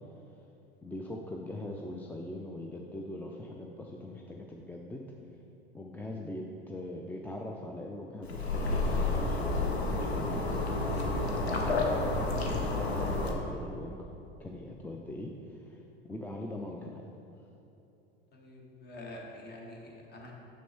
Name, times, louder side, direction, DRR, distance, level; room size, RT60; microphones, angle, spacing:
voice 1, 0.8-5.2 5.7-10.5 10.9-14.1 14.4-17.1, left 1 dB, 5° left, 0 dB, 0.3 m, -41 dB
sound 1, 8.2-13.3, left 2 dB, 85° left, 0.9 m, -30 dB
voice 2, 18.3-20.3, left 1 dB, 30° left, -1 dB, 1.5 m, -46 dB
6.6 x 6.0 x 4.4 m, 2.8 s
figure-of-eight pair, 80°, 31 cm